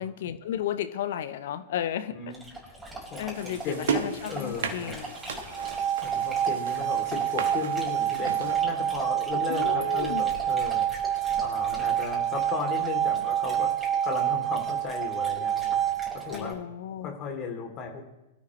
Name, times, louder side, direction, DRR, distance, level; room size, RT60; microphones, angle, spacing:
voice 1, 0.0-2.2 3.2-5.2 9.5-10.2 16.3-17.1, left 10 dB, 60° left, 12 dB, 0.9 m, -33 dB
Dog, 2.3-16.5, right 1 dB, 10° right, 5.4 m, -43 dB
voice 2, 3.1-5.0 6.0-10.8 11.2-15.8 16.1-16.6 17.0-18.0, left 5 dB, 35° left, 3 dB, 3.2 m, -36 dB
sound 1, 3.3-8.6, right 6 dB, 65° right, 1.6 m, -36 dB
sound 2, 5.4-16.4, right 11 dB, 25° right, 1.1 m, -27 dB
23.0 x 13.0 x 3.3 m, 0.98 s
figure-of-eight pair, 100°, 0 cm